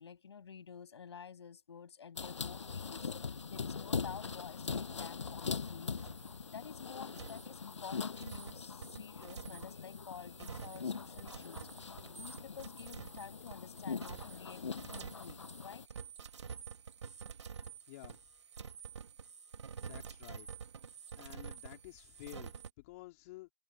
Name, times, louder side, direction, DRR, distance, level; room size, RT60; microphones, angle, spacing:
voice 1, 0.0-3.1 3.5-6.0 6.5-14.6 14.9-15.9, left 7 dB, 65° left, 7.9 m, -50 dB
sound 1, 2.2-15.9, left 5 dB, 80° left, 7.8 m, -42 dB
sound 2, 5.0-5.7 6.0-6.3 7.1-22.7, right 6 dB, 75° right, 2.2 m, -49 dB
voice 2, 17.9-18.2 19.8-20.5 21.1-23.5, left 20 dB, 30° left, 3.8 m, -52 dB
hypercardioid pair, 155°, 15 cm